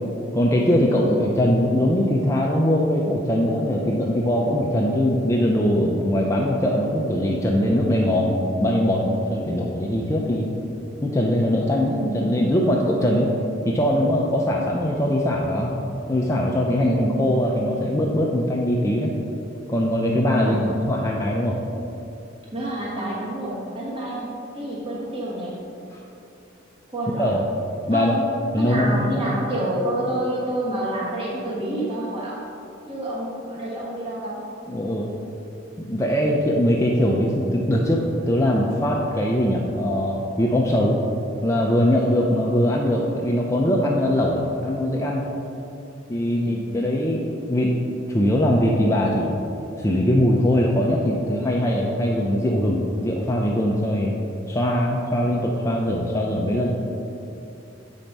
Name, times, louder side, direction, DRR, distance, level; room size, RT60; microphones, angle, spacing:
voice 1, 0.3-10.5 11.0-13.3 13.6-15.7 16.1-19.1 19.7-21.6 27.1-27.5 27.9-28.2 28.5-29.4 34.7-35.1 35.8-41.0 41.4-45.2 46.1-47.7 48.1-49.3 49.8-54.1 54.5-56.7, equal, 15° left, -2 dB, 0.4 m, -21 dB
voice 2, 0.9-1.4 11.9-12.3 16.8-17.2 20.3-20.8 22.5-24.2 24.5-25.6 26.9-27.4 27.9-28.2 28.6-32.4 32.9-34.4 36.1-36.3 46.3-46.7, right 1 dB, 30° right, -6 dB, 1.3 m, -28 dB
7.3 x 4.4 x 5.2 m, 2.8 s
head